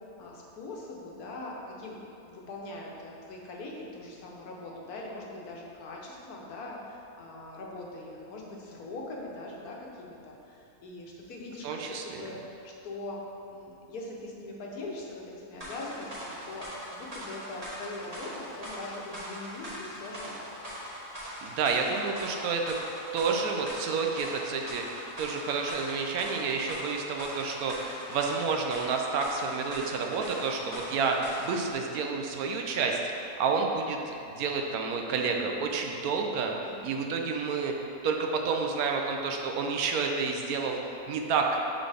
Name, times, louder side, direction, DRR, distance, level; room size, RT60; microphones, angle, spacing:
voice 1, 0.2-2.0 2.2-13.2 13.5-20.3 36.6-37.1, left 2 dB, 80° left, -2 dB, 1.4 m, -42 dB
voice 2, 11.6-12.3 21.4-22.8 23.1-33.0 33.4-36.5 36.8-37.7 38.0-41.5, right 5 dB, 75° right, 2 dB, 1.0 m, -30 dB
sound 1, 15.6-31.7, equal, 25° right, 1.2 m, -41 dB
7.3 x 4.1 x 3.4 m, 2.8 s
omnidirectional pair, 1.6 m